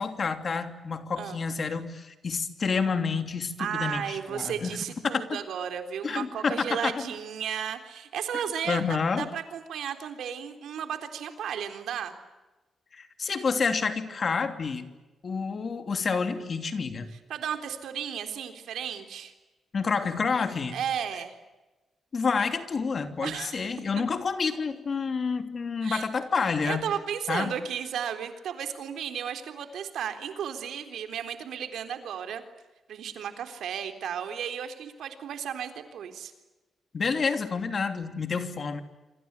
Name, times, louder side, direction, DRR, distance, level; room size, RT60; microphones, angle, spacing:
voice 1, 0.0-4.8 5.0-5.4 6.0-7.1 8.7-9.3 12.9-14.9 15.2-17.1 19.7-20.8 22.1-26.8 27.3-27.5 36.9-38.8, left 5 dB, 40° left, 8 dB, 3.0 m, -29 dB
voice 2, 3.6-8.8 9.2-12.2 17.3-19.3 20.7-21.4 23.2-23.7 25.8-26.1 26.6-32.4 32.9-36.3, right 8 dB, 85° right, 7 dB, 3.7 m, -34 dB
27.5 x 26.0 x 8.3 m, 1.1 s
cardioid pair, 125°, 0 cm